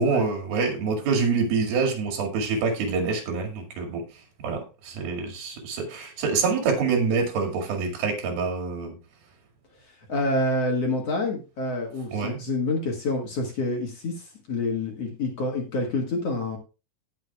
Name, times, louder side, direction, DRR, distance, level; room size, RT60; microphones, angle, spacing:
voice 1, 0.0-4.0 4.4-9.0 12.1-12.4, right 4 dB, 80° right, 2 dB, 4.0 m, -26 dB
voice 2, 10.1-16.6, left 2 dB, 50° left, 1 dB, 2.2 m, -27 dB
18.0 x 6.5 x 2.3 m, 0.30 s
omnidirectional pair, 4.3 m